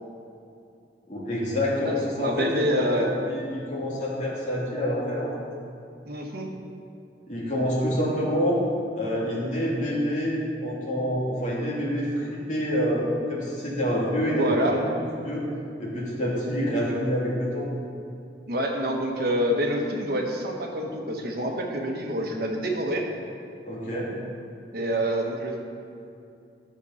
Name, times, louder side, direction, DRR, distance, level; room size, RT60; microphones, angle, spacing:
voice 1, 1.1-5.3 7.3-8.6 9.0-10.4 10.6-14.8 15.2-15.4 15.8-17.7 23.6-24.1, equal, 45° left, -6 dB, 2.5 m, -27 dB
voice 2, 2.2-3.1 6.1-6.5 14.3-14.8 18.5-23.0 24.7-25.6, equal, 60° right, 1 dB, 1.3 m, -27 dB
10.5 x 6.8 x 5.6 m, 2.6 s
head